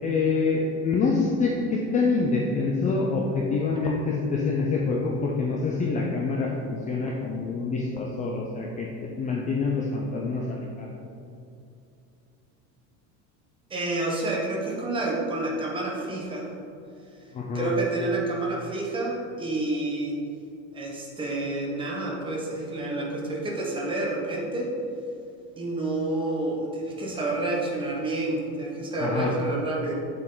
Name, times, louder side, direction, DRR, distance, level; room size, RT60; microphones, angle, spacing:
voice 1, 0.0-8.9 9.2-10.9 17.3-17.7 29.0-29.3, left 4 dB, 20° left, -1 dB, 0.5 m, -26 dB
voice 2, 13.7-16.5 17.5-20.2 20.7-24.7 25.6-29.9, right 2 dB, 15° right, -3 dB, 1.2 m, -29 dB
8.3 x 7.7 x 3.9 m, 2.6 s
cardioid pair, 175°, 36 cm